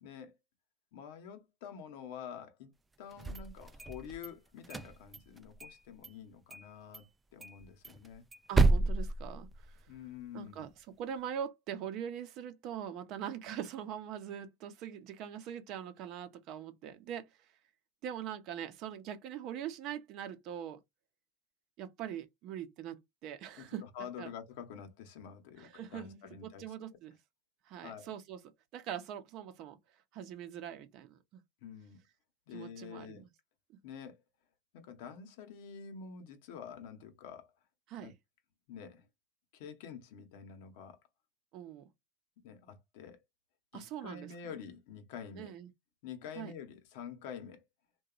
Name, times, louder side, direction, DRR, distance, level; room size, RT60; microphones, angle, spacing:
voice 1, 0.0-0.3 0.9-2.7 3.0-8.2 9.9-10.7 23.6-26.6 27.8-28.1 31.6-32.0 32.5-33.2 33.8-34.2 34.7-37.5 38.0-38.1 38.7-39.1 39.5-41.0 42.4-43.2 43.7-45.5 46.0-47.6, left 7 dB, 75° left, 0.8 m, -47 dB
sound 1, 3.1-4.3 4.6-5.8 6.0-6.1 6.5-6.7 6.9-7.0 7.4-10.0, right 3 dB, 15° right, 0.3 m, -31 dB
voice 2, 8.5-9.9 10.3-17.5 18.0-20.8 21.8-23.0 23.2-23.8 24.2-24.3 25.6-27.2 27.7-28.4 28.7-29.8 30.1-31.4 32.5-33.3 37.9-38.1 41.5-41.9 43.7-44.3 45.4-45.7 46.3-46.5, right 9 dB, 55° right, 0.6 m, -42 dB
2.9 x 2.2 x 2.3 m
supercardioid pair, 125°, 0 cm